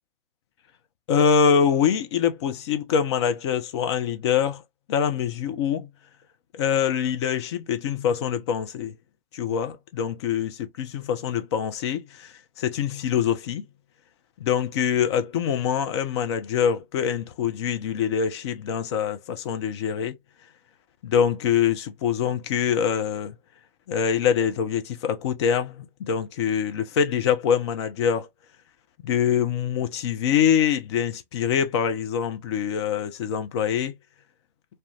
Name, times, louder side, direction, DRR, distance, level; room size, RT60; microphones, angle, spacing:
voice 1, 1.1-4.6 4.9-5.9 6.5-9.0 9.3-13.6 14.4-20.2 21.0-23.3 23.9-28.3 29.0-34.0, left 8 dB, 30° left, 0.4 m, -24 dB
2.2 x 2.1 x 2.7 m
figure-of-eight pair, 120°, 29 cm